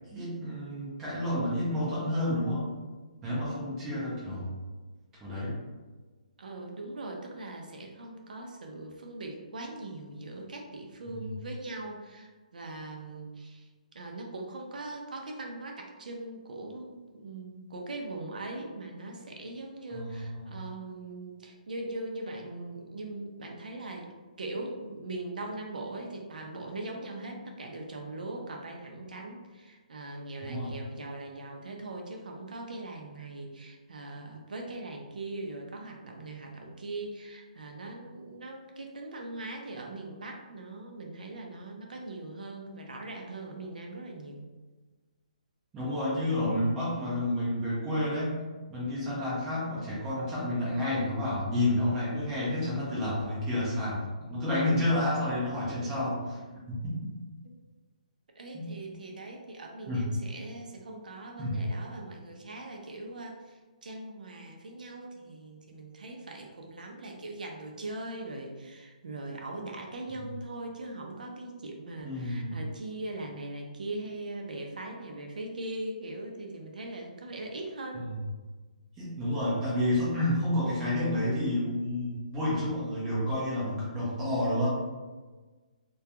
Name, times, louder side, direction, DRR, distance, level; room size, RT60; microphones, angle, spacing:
voice 1, 0.1-2.7 3.2-4.6 5.2-5.5 11.1-11.3 19.9-20.5 30.4-30.7 45.7-48.4 48.7-56.4 56.7-57.1 58.5-58.7 59.9-60.0 61.4-61.6 72.0-72.6 77.9-78.2 79.0-84.7, left 1 dB, 10° right, -8 dB, 0.5 m, -30 dB
voice 2, 6.4-13.7 13.9-24.1 24.4-44.5 58.3-78.1, right 2 dB, 75° right, 1 dB, 0.5 m, -40 dB
2.3 x 2.2 x 2.7 m, 1.3 s
hypercardioid pair, 175°, 5 cm